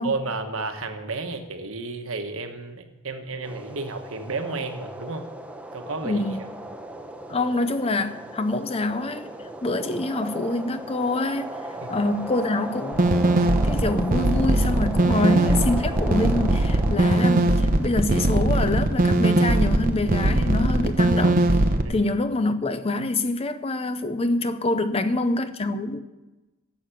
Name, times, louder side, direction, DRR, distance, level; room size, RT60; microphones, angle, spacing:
voice 1, 0.0-5.3 5.7-6.2 11.8-12.0 21.8-22.1, right 3 dB, 60° right, 1.3 m, -32 dB
sound 1, 3.4-20.4, right 1 dB, 5° right, 0.7 m, -38 dB
voice 2, 6.0-6.4 7.3-11.5 11.9-13.1 13.6-21.6 21.9-26.0, left 2 dB, 25° left, 0.5 m, -26 dB
sound 2, 12.9-21.8, right 1 dB, 40° right, 0.9 m, -20 dB
11.5 x 7.6 x 9.0 m
head